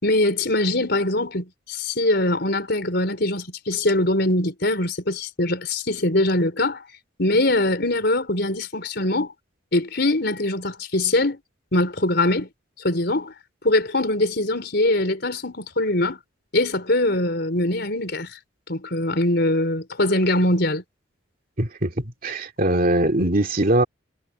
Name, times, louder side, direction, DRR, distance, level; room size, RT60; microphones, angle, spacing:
voice 1, 0.0-6.8 7.2-9.3 9.7-11.4 11.7-12.5 12.8-13.3 13.6-16.2 16.5-18.4 18.7-20.8, left 1 dB, 55° left, 4.7 m, -22 dB
voice 2, 21.6-23.8, right 1 dB, 45° right, 2.5 m, -21 dB
head